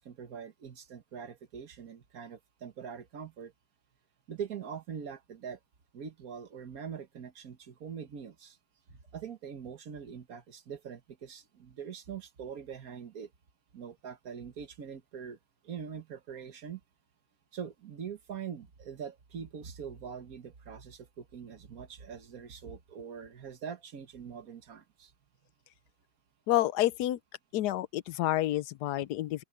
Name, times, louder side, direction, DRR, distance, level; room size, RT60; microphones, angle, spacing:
voice 1, 0.0-3.5 4.3-5.6 5.9-8.6 8.9-13.3 13.7-15.4 15.6-16.8 17.5-25.1, right 7 dB, 55° right, 1.8 m, -43 dB
voice 2, 26.5-27.2 27.5-29.4, left 15 dB, 70° left, 1.2 m, -29 dB
open air
omnidirectional pair, 1.9 m